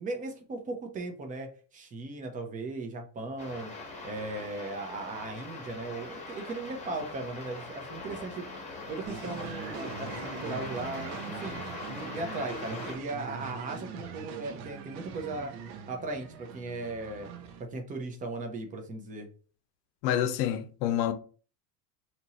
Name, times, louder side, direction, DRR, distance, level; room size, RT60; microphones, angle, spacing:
voice 1, 0.0-3.7 4.0-8.4 8.9-11.6 11.9-15.5 15.9-17.3 17.6-19.3, right 2 dB, 15° right, 0.6 m, -37 dB
sound 1, 3.4-13.0, left 2 dB, 15° left, 1.0 m, -42 dB
sound 2, 9.0-17.6, right 6 dB, 70° right, 0.8 m, -42 dB
voice 2, 20.0-21.1, left 11 dB, 75° left, 0.7 m, -27 dB
2.9 x 2.5 x 4.2 m
supercardioid pair, 140°, 48 cm